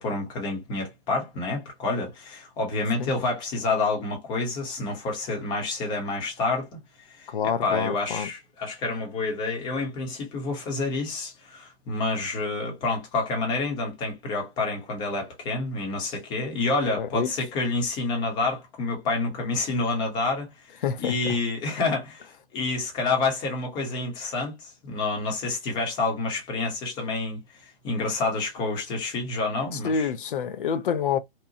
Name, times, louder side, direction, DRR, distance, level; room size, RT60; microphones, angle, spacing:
voice 1, 0.0-6.8 7.1-30.1, left 3 dB, 15° left, 0.7 m, -28 dB
voice 2, 7.3-8.3 17.0-17.3 20.8-21.1 29.7-31.2, left 6 dB, 55° left, 0.5 m, -27 dB
2.8 x 2.1 x 2.7 m
figure-of-eight pair, 130°, 32 cm